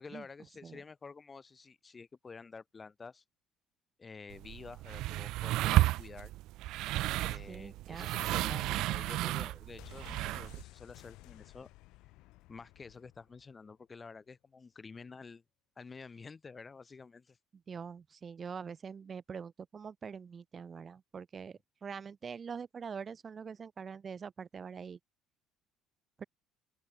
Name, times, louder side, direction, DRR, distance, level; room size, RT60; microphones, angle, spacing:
voice 1, 0.0-3.2 4.0-6.3 7.2-11.7 12.5-15.4 15.8-17.4, left 4 dB, 20° left, 2.1 m, -50 dB
sound 1, 4.3-10.6, right 17 dB, 70° right, 0.5 m, -32 dB
voice 2, 7.2-8.4 17.7-25.0 26.2-26.3, right 6 dB, 30° right, 1.6 m, -44 dB
sound 2, 9.8-13.6 13.8-13.9, left 20 dB, 80° left, 1.2 m, -55 dB
open air
cardioid pair, 130°, 0 cm